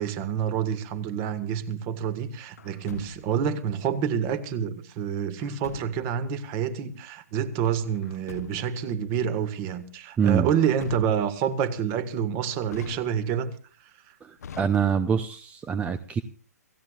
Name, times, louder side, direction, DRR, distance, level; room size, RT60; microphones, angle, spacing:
voice 1, 0.0-13.5 13.8-14.2, right 8 dB, 30° right, 1.7 m, -28 dB
Truck, 2.6-3.5 5.4-6.2 7.9-8.9 10.4-11.5 12.7-13.5 14.4-15.3, left 7 dB, 65° left, 0.9 m, -43 dB
voice 2, 14.2-16.2, right 7 dB, 15° right, 0.7 m, -25 dB
28.5 x 16.0 x 2.5 m
figure-of-eight pair, 125°, 9 cm